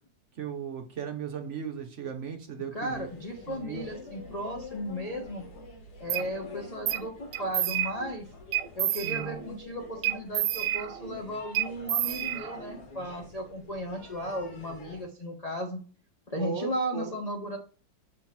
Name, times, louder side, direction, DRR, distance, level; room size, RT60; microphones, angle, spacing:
voice 1, 0.3-3.1 3.5-3.9 9.0-9.4 16.4-17.2, right 7 dB, 55° right, 5 dB, 0.8 m, -36 dB
voice 2, 2.7-5.4 6.0-8.3 8.7-15.8 16.3-17.6, equal, 45° left, 1 dB, 0.5 m, -35 dB
sound 1, 2.8-15.0, left 3 dB, 75° left, 2.4 m, -47 dB
sound 2, 6.1-6.3 6.9-7.1 7.3-8.1 8.5-9.5 10.0-11.2 11.6-12.8, right 12 dB, 75° right, 1.3 m, -30 dB
7.1 x 2.9 x 5.7 m, 0.40 s
omnidirectional pair, 2.0 m